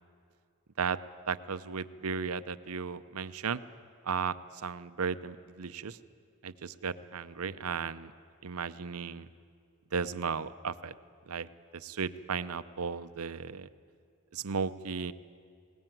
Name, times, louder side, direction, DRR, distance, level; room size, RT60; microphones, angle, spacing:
voice 1, 1.3-3.6 4.0-4.4 4.6-6.0 6.4-8.1 8.4-9.3 9.9-10.9 11.3-13.7 14.3-15.1, right 5 dB, 80° right, 14 dB, 0.7 m, -35 dB
21.0 x 19.0 x 9.2 m, 2.3 s
head